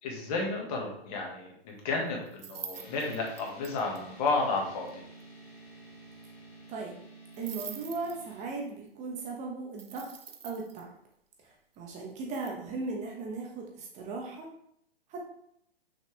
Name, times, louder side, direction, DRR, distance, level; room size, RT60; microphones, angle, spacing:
voice 1, 0.0-5.0, left 3 dB, 40° left, 0 dB, 1.9 m, -32 dB
sound 1, 2.3-4.0 4.3-4.4 4.6-4.7 4.9-5.0 5.2-5.3 7.3-8.6 9.8-10.8 12.2-12.5, right 7 dB, 65° right, 1.1 m, -44 dB
sound 2, 2.7-8.5, right 1 dB, 75° left, 2.7 m, -51 dB
voice 2, 7.4-10.1 10.4-10.9 11.4-14.5 15.1-15.2, right 3 dB, 25° right, 0 dB, 1.1 m, -37 dB
6.2 x 5.4 x 3.5 m, 0.70 s
figure-of-eight pair, 125°, 31 cm